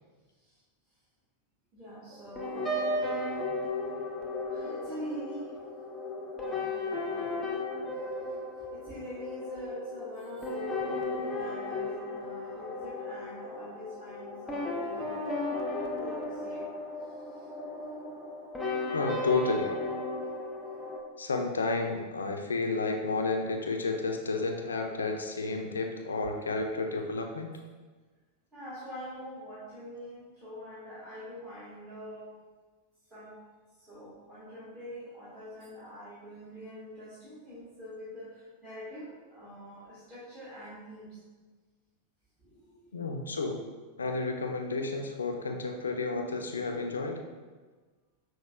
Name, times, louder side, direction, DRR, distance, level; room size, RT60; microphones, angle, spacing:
voice 1, 1.7-3.0 4.5-5.6 6.4-7.4 8.2-15.3 16.0-16.7 17.0-17.5 25.2-25.4 28.5-32.4 33.1-33.4 33.7-41.2 42.4-43.2, equal, 20° right, -12 dB, 1.1 m, -45 dB
sound 1, 2.1-21.0, left 2 dB, 5° left, 0.6 m, -35 dB
voice 2, 18.9-19.8 21.2-27.5 42.9-43.6 44.0-47.2, left 3 dB, 70° left, 3 dB, 0.3 m, -31 dB
5.8 x 2.1 x 2.3 m, 1.4 s
figure-of-eight pair, 90°, 0 cm